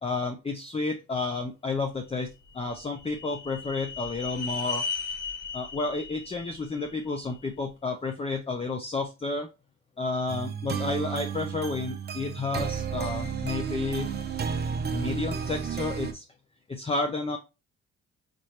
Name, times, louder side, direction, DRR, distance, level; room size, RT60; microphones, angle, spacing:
voice 1, 0.0-4.9 5.5-9.5 10.0-14.1 14.9-16.2 16.7-17.4, left 3 dB, 20° left, 4 dB, 0.6 m, -31 dB
sound 1, 2.3-7.5, left 5 dB, 70° left, 2.2 m, -37 dB
sound 2, 10.3-16.1, right 6 dB, 35° right, 0.7 m, -32 dB
5.1 x 2.8 x 3.2 m, 0.27 s
cardioid pair, 90°, 30 cm